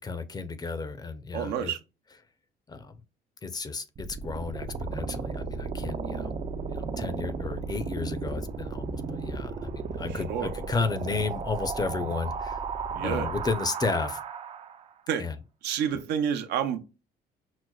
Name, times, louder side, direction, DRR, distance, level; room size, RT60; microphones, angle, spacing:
voice 1, 0.0-1.7 2.7-2.9 3.4-6.3 6.7-12.6 13.0-14.2 15.2-15.4, left 4 dB, 25° left, 0.5 m, -33 dB
voice 2, 1.3-1.8 10.3-10.5 12.9-13.3 15.1-15.2 15.6-16.8, right 8 dB, 80° right, 0.6 m, -28 dB
sound 1, 3.9-14.9, right 5 dB, 35° right, 0.4 m, -34 dB
6.0 x 2.0 x 2.3 m
cardioid pair, 110°, 17 cm